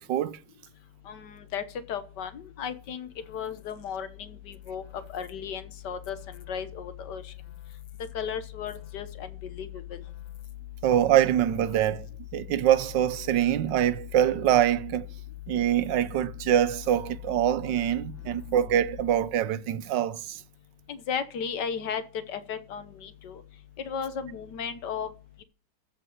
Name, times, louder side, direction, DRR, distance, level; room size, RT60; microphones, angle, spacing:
voice 1, 1.1-7.3 8.1-10.0 20.9-23.4 23.9-25.1, left 7 dB, 75° left, 1.7 m, -35 dB
sound 1, 2.9-19.5, left 14 dB, 50° left, 1.0 m, -43 dB
voice 2, 10.8-12.1 12.3-15.0 15.5-20.4, right 11 dB, 80° right, 1.4 m, -24 dB
14.5 x 5.5 x 7.2 m
omnidirectional pair, 1.9 m